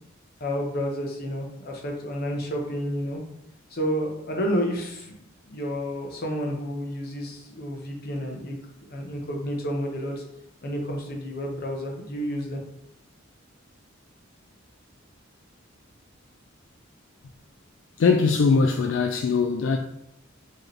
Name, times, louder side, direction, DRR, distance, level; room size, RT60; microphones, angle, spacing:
voice 1, 0.4-3.2 3.7-5.2 5.5-10.2 10.6-12.6, equal, 50° left, 0.9 m, -30 dB
voice 2, 18.0-19.8, left 4 dB, 65° left, 0.3 m, -21 dB
4.6 x 3.0 x 3.1 m
head